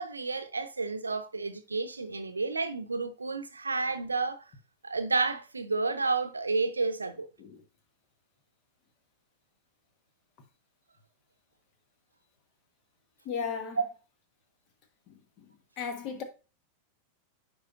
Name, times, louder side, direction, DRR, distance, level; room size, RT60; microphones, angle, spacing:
voice 1, 0.0-4.4 4.8-7.3 13.8-13.9, right 3 dB, 80° right, 0.6 m, -31 dB
voice 2, 13.2-13.8 15.1-15.4 15.8-16.2, left 6 dB, 40° left, 1.3 m, -36 dB
9.8 x 4.6 x 2.5 m
figure-of-eight pair, 90°, 0 cm